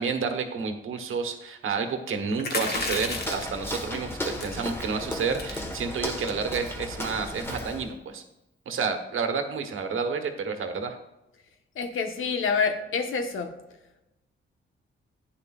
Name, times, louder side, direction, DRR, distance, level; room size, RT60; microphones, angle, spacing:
voice 1, 0.0-8.2 8.6-11.0, right 5 dB, 75° right, 6 dB, 1.3 m, -30 dB
sound 1, 2.4-3.6 4.3-4.6 5.0-5.1 5.3-5.6 6.1-6.4, left 3 dB, 50° left, 1.5 m, -31 dB
Walk footsteps, 2.6-7.9, left 1 dB, 10° left, 1.4 m, -35 dB
voice 2, 11.7-13.5, left 5 dB, 75° left, 5 dB, 1.3 m, -27 dB
11.5 x 9.6 x 2.5 m, 0.95 s
cardioid pair, 95°, 21 cm